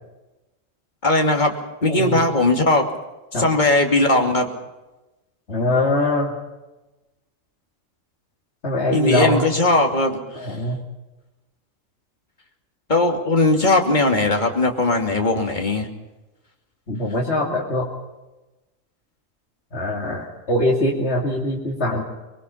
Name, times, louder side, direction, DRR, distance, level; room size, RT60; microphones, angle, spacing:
voice 1, 1.0-1.5 1.8-2.9 3.3-4.5 8.9-10.5 12.9-15.9, left 2 dB, 35° left, 3 dB, 2.8 m, -19 dB
voice 2, 1.9-2.2 3.3-3.5 5.5-6.3 8.6-9.5 10.3-10.8 16.9-17.9 19.7-22.0, left 1 dB, 55° left, -2 dB, 3.0 m, -22 dB
25.0 x 21.5 x 5.7 m, 1.1 s
omnidirectional pair, 1.3 m